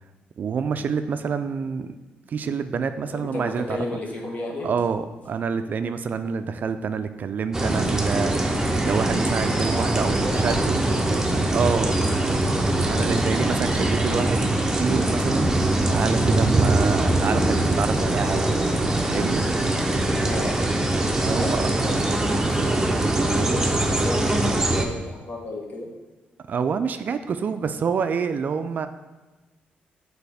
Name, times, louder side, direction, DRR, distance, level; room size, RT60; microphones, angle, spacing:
voice 1, 0.4-2.0 2.3-3.8 4.6-10.8 11.5-11.9 12.8-14.4 14.8-18.4 19.1-19.4 21.3-21.7 26.5-28.9, right 6 dB, 50° right, 9 dB, 0.3 m, -27 dB
voice 2, 3.1-4.7 9.7-9.9 10.2-11.0 11.3-11.4 20.2-20.6 21.4-25.9, left 2 dB, 45° left, -1 dB, 1.3 m, -33 dB
sound 1, 7.5-24.8, right 1 dB, 15° right, 0.7 m, -22 dB
6.8 x 4.0 x 3.5 m, 1.2 s
cardioid pair, 90°, 4 cm